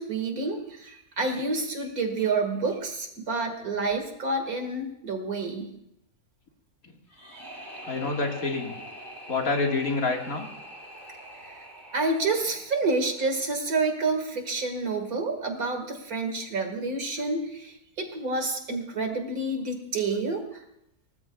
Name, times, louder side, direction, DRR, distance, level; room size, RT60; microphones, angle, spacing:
voice 1, 0.0-5.7 11.4-11.6 11.9-20.6, right 3 dB, 70° right, 5 dB, 2.4 m, -29 dB
sound 1, 7.1-14.1, equal, 15° right, 2.6 m, -44 dB
voice 2, 7.8-8.7 9.3-10.5, left 3 dB, 70° left, 1 dB, 2.3 m, -27 dB
23.5 x 18.5 x 2.4 m, 0.79 s
omnidirectional pair, 1.6 m